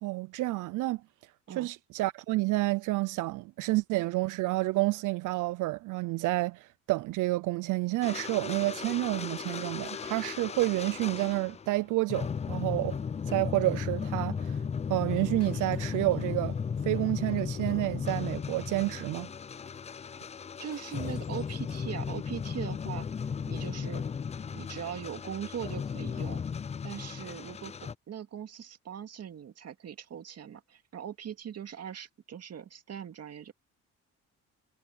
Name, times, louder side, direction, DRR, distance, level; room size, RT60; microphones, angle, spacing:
voice 1, 0.0-14.6 14.9-16.6 16.8-19.3, right 20 dB, 85° right, 0.5 m, -30 dB
sound 1, 8.0-11.8 12.1-28.0, left 6 dB, 20° left, 0.4 m, -35 dB
Shatter, 9.1-10.8 15.4-16.5 20.7-22.0, left 8 dB, 55° left, 7.0 m, -58 dB
voice 2, 20.6-23.1 23.5-24.0 24.5-26.4 26.8-33.5, right 8 dB, 55° right, 2.2 m, -40 dB
cardioid pair, 90°, 30 cm